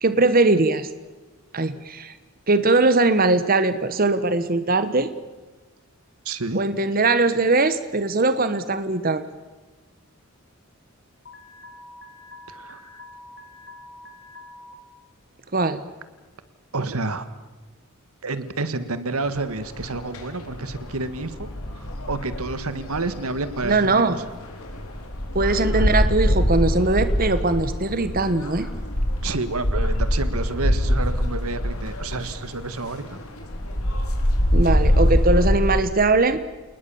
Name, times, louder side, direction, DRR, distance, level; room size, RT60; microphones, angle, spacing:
voice 1, 0.0-0.9 1.5-2.1 2.5-5.1 6.5-9.2 15.5-15.8 23.6-24.2 25.3-28.7 34.5-36.4, right 3 dB, 40° right, 12 dB, 1.2 m, -20 dB
voice 2, 6.2-6.6 12.5-12.8 16.7-17.2 18.2-24.2 29.2-33.2, right 3 dB, 85° right, 13 dB, 1.7 m, -29 dB
Alarm, 11.3-14.7, left 2 dB, 50° left, 3.1 m, -45 dB
sound 1, 19.2-35.9, equal, 85° left, 4.4 m, -24 dB
28.5 x 20.0 x 7.1 m, 1.2 s
head